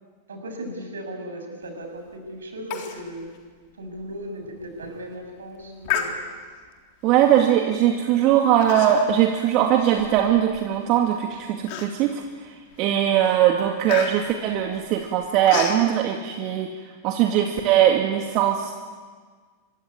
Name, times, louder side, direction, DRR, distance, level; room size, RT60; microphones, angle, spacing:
voice 1, 0.3-3.4 3.7-6.1, right 1 dB, 70° right, 3 dB, 7.2 m, -36 dB
Human voice, 2.7-3.0 3.3-3.4 4.0-4.1 4.6-4.9 5.8-6.6 7.3-7.6 8.6-9.2 9.6-10.6 11.1-11.2 11.7-12.2 12.7-13.0 13.2-15.8, left 9 dB, 45° left, 3.7 m, -31 dB
voice 2, 7.0-16.7 17.0-18.7, right 10 dB, 40° right, 3 dB, 2.3 m, -20 dB
26.5 x 23.0 x 9.4 m, 1.5 s
figure-of-eight pair, 90°, 0 cm